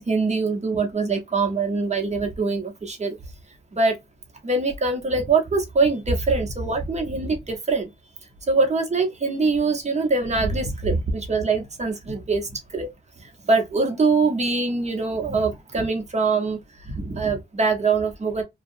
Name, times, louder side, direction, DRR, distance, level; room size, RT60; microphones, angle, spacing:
voice 1, 0.1-3.1 3.7-3.9 4.4-7.9 8.5-12.4 12.7-12.9 13.5-16.6 16.9-18.4, right 3 dB, 35° right, 0.9 m, -23 dB
2.7 x 2.3 x 2.6 m
cardioid pair, 85°, 20 cm